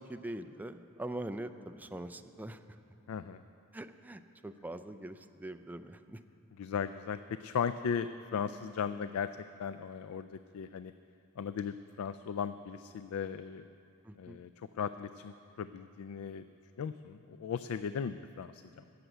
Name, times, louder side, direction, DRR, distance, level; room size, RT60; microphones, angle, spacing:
voice 1, 0.0-2.6 3.7-6.2 14.1-14.4, right 1 dB, 10° right, 9 dB, 0.4 m, -43 dB
voice 2, 3.1-3.4 6.6-9.3 9.6-10.9 11.4-13.7 14.2-16.4 16.8-18.8, left 7 dB, 80° left, 12 dB, 0.3 m, -37 dB
14.0 x 6.9 x 9.0 m, 2.6 s
head